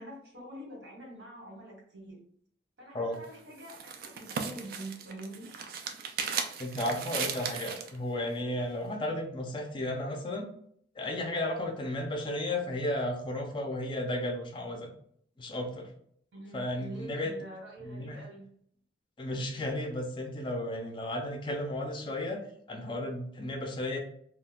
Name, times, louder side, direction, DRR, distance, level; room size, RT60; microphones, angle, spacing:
voice 1, 0.0-2.2 2.8-5.5 16.3-18.5, right 1 dB, 80° right, -3 dB, 1.4 m, -45 dB
sound 1, 3.1-8.0, right 6 dB, 55° right, 0.3 m, -37 dB
voice 2, 6.6-10.5 11.0-14.9 15.4-15.9 16.5-17.3 17.8-18.2 19.2-24.0, left 1 dB, 25° left, 3 dB, 0.4 m, -34 dB
2.3 x 2.2 x 3.5 m, 0.65 s
head